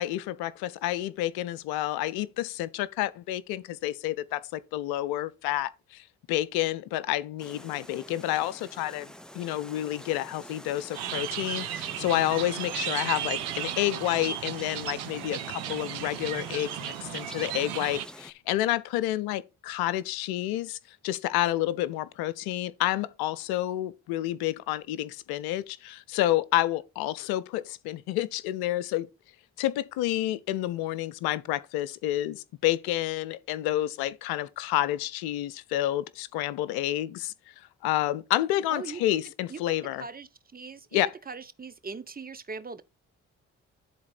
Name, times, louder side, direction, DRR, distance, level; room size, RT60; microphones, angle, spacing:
voice 1, 0.0-9.1 9.3-20.8 21.0-29.1 29.6-37.3 37.8-40.0 40.9-41.1, left 14 dB, 80° left, 0.6 m, -29 dB
sound 1, 7.4-18.3, equal, ahead, 0.9 m, -47 dB
sound 2, 10.9-18.1, right 11 dB, 85° right, 0.7 m, -35 dB
voice 2, 38.7-39.0 39.5-39.6 40.0-40.9 41.3-42.8, right 4 dB, 25° right, 1.0 m, -40 dB
11.0 x 4.0 x 4.1 m
hypercardioid pair, 40°, 37 cm